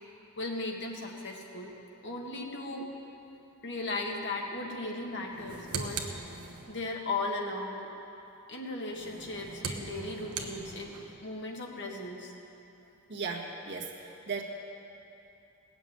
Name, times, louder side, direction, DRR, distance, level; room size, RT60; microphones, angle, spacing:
voice 1, 0.4-1.7 2.0-2.9 3.6-6.1 6.7-7.9 8.5-11.0 11.2-12.3, left 2 dB, 55° left, 0 dB, 1.8 m, -36 dB
sound 1, 5.3-6.9 8.9-11.2, right 4 dB, 90° right, 1.2 m, -40 dB
voice 2, 13.1-14.4, right 4 dB, 55° right, -1 dB, 1.8 m, -37 dB
19.0 x 7.1 x 8.9 m, 2.9 s
head